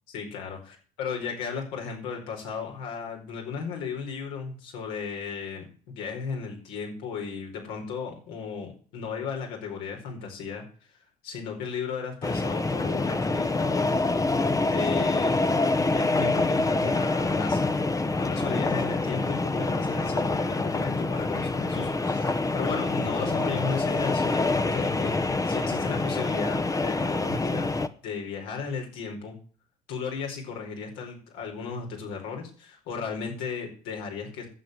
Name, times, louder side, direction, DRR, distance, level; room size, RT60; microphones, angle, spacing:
voice 1, 0.1-10.6 10.9-14.0 14.7-15.3 15.9-17.7 18.2-25.1 25.4-27.7 28.0-29.4 29.9-34.5, left 5 dB, 75° left, 1 dB, 4.8 m, -35 dB
sound 1, 12.2-27.9, left 3 dB, 20° left, 1.1 m, -26 dB
11.5 x 8.5 x 7.9 m, 0.42 s
hypercardioid pair, 65°, 19 cm